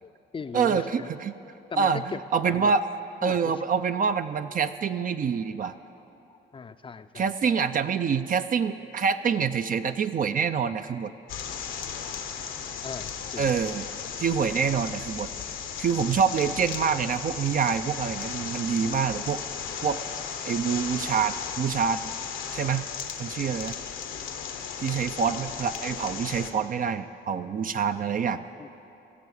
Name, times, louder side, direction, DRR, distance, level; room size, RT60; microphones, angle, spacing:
voice 1, 0.0-1.1 1.7-2.7 3.2-3.6 5.6-5.7 6.3-7.5 11.3-13.5 23.4-23.6 28.6-28.9, left 5 dB, 25° left, 12 dB, 0.5 m, -40 dB
voice 2, 0.5-1.3 1.7-2.0 2.3-2.9 3.2-5.7 7.2-11.1 13.4-13.9 14.2-19.4 19.8-20.0 20.4-22.1 22.5-22.8 23.2-23.8 24.8-28.4, right 6 dB, 45° right, 9 dB, 0.5 m, -26 dB
sound 1, 11.3-26.5, left 7 dB, 85° left, 1.2 m, -35 dB
16.5 x 6.9 x 8.2 m, 2.7 s
cardioid pair, 90°, 20 cm